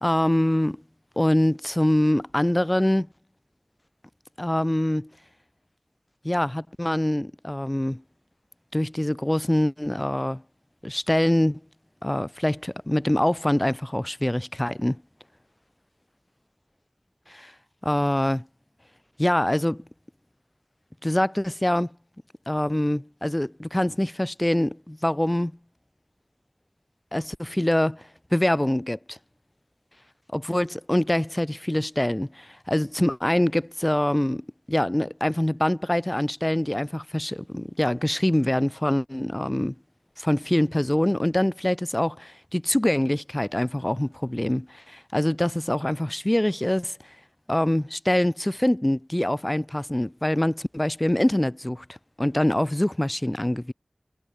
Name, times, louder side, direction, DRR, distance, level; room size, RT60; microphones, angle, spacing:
voice 1, 0.0-0.8 1.2-3.1 4.4-5.1 6.2-8.0 8.7-10.4 10.8-11.6 12.0-15.0 17.3-17.5 17.8-18.4 19.2-19.8 21.0-21.9 22.5-25.5 27.1-28.0 28.3-29.2 30.3-39.7 40.2-47.0 47.5-51.8 52.2-53.7, left 1 dB, 20° left, 0.5 m, -24 dB
wide cardioid pair, 50°, 0 cm